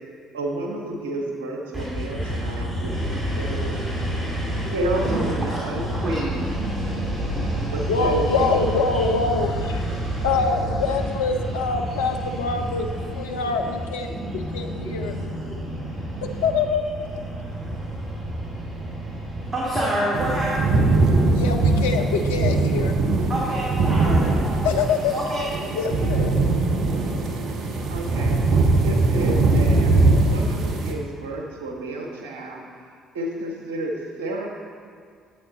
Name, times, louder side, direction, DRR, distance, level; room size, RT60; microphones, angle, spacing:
voice 1, 0.3-3.8 4.7-6.5 7.7-8.6 27.9-32.6 33.1-34.5, right 1 dB, 80° right, 0 dB, 1.2 m, -31 dB
voice 2, 1.7-16.5 17.0-20.8 23.3-26.1, right 1 dB, 25° right, -6 dB, 2.5 m, -28 dB
voice 3, 7.9-9.9 10.2-12.9 13.1-15.2 16.2-16.8 21.3-23.0 24.6-25.1 25.7-26.4, left 4 dB, 80° left, 5 dB, 0.6 m, -25 dB
sound 1, 20.1-30.9, right 2 dB, 60° right, 1.0 m, -21 dB
11.0 x 8.1 x 4.0 m, 2.1 s
hypercardioid pair, 50°, 0 cm